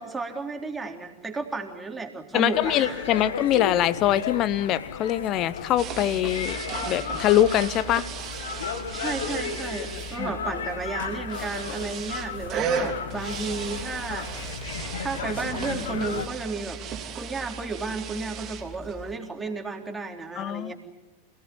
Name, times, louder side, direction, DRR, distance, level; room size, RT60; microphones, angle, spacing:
voice 1, 0.0-3.2 8.9-14.3 14.6-16.8 17.1-20.7, right 4 dB, 10° right, 2 dB, 3.8 m, -33 dB
voice 2, 2.3-6.6 6.9-8.1 10.2-10.3 20.4-20.7, left 12 dB, 35° left, 18 dB, 1.0 m, -23 dB
sound 1, 2.5-16.3, left 6 dB, 65° left, 2.1 m, -34 dB
sound 2, 5.8-19.1, right 6 dB, 30° right, 3.5 m, -36 dB
28.0 x 18.0 x 9.9 m, 1.1 s
figure-of-eight pair, 90°, 0 cm